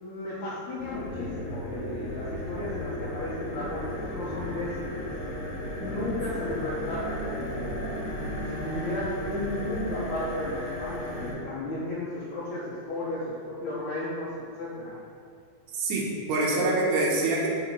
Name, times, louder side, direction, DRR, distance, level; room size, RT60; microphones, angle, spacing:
voice 1, 0.0-5.0 5.8-8.1 8.5-14.3 14.6-15.0, left 2 dB, 80° left, -8 dB, 1.7 m, -34 dB
sound 1, 0.8-11.3, equal, 55° left, 2.2 m, -34 dB
voice 2, 15.8-17.5, right 2 dB, 75° right, -3 dB, 1.7 m, -25 dB
5.5 x 4.4 x 5.4 m, 2.3 s
omnidirectional pair, 4.7 m